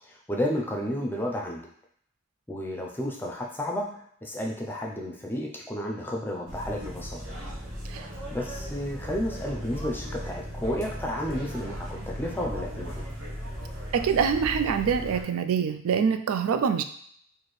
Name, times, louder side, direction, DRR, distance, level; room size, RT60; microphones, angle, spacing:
voice 1, 0.1-1.7 2.5-7.2 8.3-13.0, left 1 dB, 10° left, 0 dB, 0.5 m, -32 dB
sound 1, 6.5-15.2, equal, 70° right, 1.0 m, -37 dB
voice 2, 13.9-16.8, right 6 dB, 85° right, 9 dB, 0.3 m, -25 dB
4.2 x 2.6 x 3.2 m, 0.64 s
head